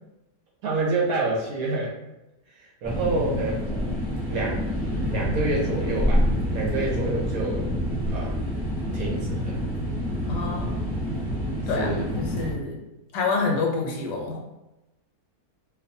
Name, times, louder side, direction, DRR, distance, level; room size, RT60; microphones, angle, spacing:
voice 1, 0.6-1.9 2.5-4.0 4.3-4.7 5.1-6.2 6.5-7.7 8.1-8.4 8.9-9.6 11.7-12.1, right 2 dB, 70° right, -3 dB, 0.9 m, -28 dB
sound 1, 2.8-12.5, equal, 5° right, 0.9 m, -27 dB
voice 2, 10.3-10.9 11.7-12.8 13.1-14.4, left 3 dB, 85° left, 0 dB, 1.3 m, -27 dB
2.5 x 2.5 x 2.6 m, 0.98 s
omnidirectional pair, 1.8 m